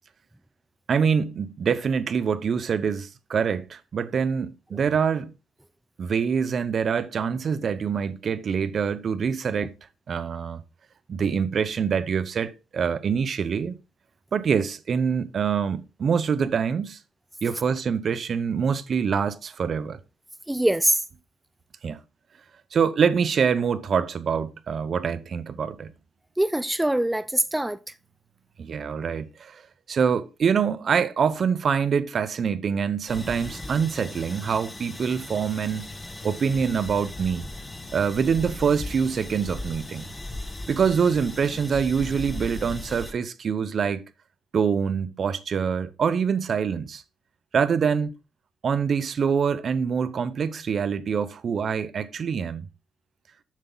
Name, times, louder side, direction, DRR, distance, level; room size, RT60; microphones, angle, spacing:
voice 1, 0.9-5.3 6.0-9.7 10.1-10.6 11.1-13.8 14.3-17.0 17.4-20.0 21.8-22.0 22.7-25.9 28.6-29.6 29.9-35.9 36.2-37.5 37.9-40.1 40.7-44.0 44.5-47.0 47.5-48.1 48.6-52.7, right 6 dB, 50° right, 0.6 m, -25 dB
voice 2, 20.5-21.0 26.4-27.8, right 1 dB, 10° right, 0.4 m, -23 dB
sound 1, 33.1-43.1, left 1 dB, 15° left, 1.2 m, -38 dB
7.4 x 6.8 x 3.8 m
cardioid pair, 90°, 0 cm